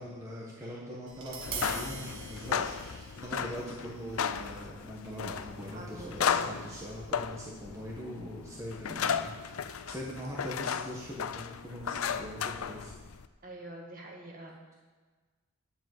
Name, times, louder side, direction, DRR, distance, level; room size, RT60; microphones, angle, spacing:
voice 1, 0.0-13.0, equal, 15° right, -4 dB, 1.3 m, -42 dB
Tap, 1.1-7.2, right 5 dB, 55° right, 1.8 m, -45 dB
sound 1, 1.4-13.3, left 7 dB, 75° left, 0.5 m, -35 dB
voice 2, 5.7-6.6 13.4-14.7, right 2 dB, 40° right, -1 dB, 2.1 m, -46 dB
10.5 x 7.2 x 7.8 m, 1.4 s
head